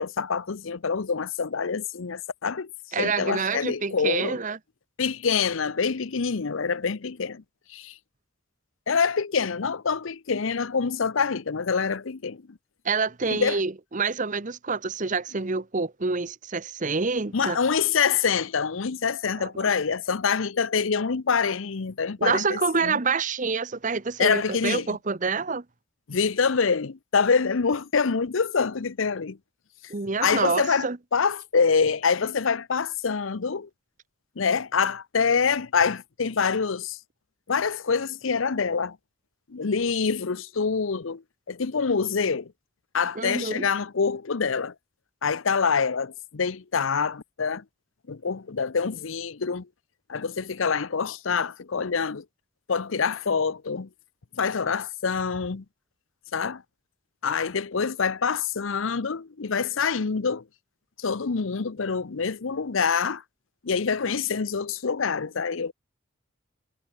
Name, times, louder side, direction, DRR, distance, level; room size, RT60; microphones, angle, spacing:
voice 1, 0.0-2.7 3.0-4.4 5.0-7.4 7.7-7.9 8.9-12.6 13.3-13.6 17.3-23.0 24.2-25.0 26.1-29.4 30.2-33.7 34.4-37.0 37.5-39.0 39.5-41.2 41.5-42.5 42.9-44.7 45.2-47.6 48.1-49.7 50.1-52.2 52.7-53.9 54.3-55.6 56.3-56.6 57.2-60.4 61.0-63.2 63.6-65.7, left 5 dB, 75° left, 0.7 m, -26 dB
voice 2, 2.9-4.6 12.8-17.6 19.4-19.5 22.2-25.6 29.9-31.0 43.2-43.7, right 4 dB, 40° right, 0.9 m, -27 dB
head